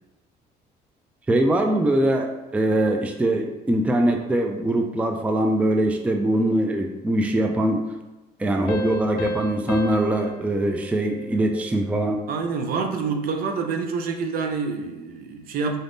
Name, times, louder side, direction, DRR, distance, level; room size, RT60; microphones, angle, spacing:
voice 1, 1.3-7.8 8.4-12.2, right 1 dB, 10° right, 4 dB, 0.3 m, -22 dB
sound 1, 8.7-12.0, equal, 65° left, 0.5 m, -33 dB
voice 2, 12.3-15.8, right 5 dB, 60° right, 5 dB, 0.5 m, -27 dB
3.9 x 3.4 x 2.6 m, 1.1 s
cardioid pair, 110°, 17 cm